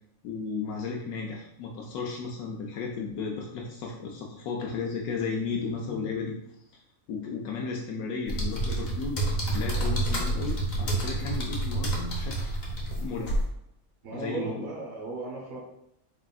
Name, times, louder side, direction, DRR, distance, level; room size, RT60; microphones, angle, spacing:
voice 1, 0.2-6.4 7.1-9.2 9.5-12.6 13.0-13.4 14.1-14.7, left 5 dB, 85° left, -1 dB, 1.1 m, -34 dB
sound 1, 8.3-13.4, right 1 dB, 50° left, 0.9 m, -29 dB
voice 2, 14.0-15.6, right 3 dB, 70° right, -2 dB, 1.5 m, -36 dB
4.4 x 3.5 x 2.3 m, 0.78 s
omnidirectional pair, 1.5 m